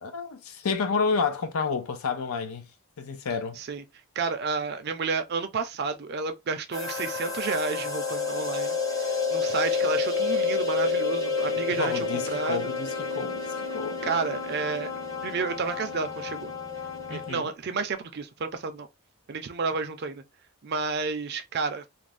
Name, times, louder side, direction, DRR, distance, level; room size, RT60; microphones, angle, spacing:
voice 1, 0.0-2.7 3.0-3.6 11.8-14.2 17.1-17.5, left 5 dB, 75° left, 0.5 m, -30 dB
voice 2, 4.2-8.8 9.1-12.7 14.0-14.9 15.2-16.5 17.1-18.9 19.3-20.2 20.6-21.8, right 4 dB, 45° right, 0.4 m, -31 dB
sound 1, 6.7-17.3, left 4 dB, 15° left, 0.7 m, -29 dB
2.5 x 2.1 x 3.2 m
head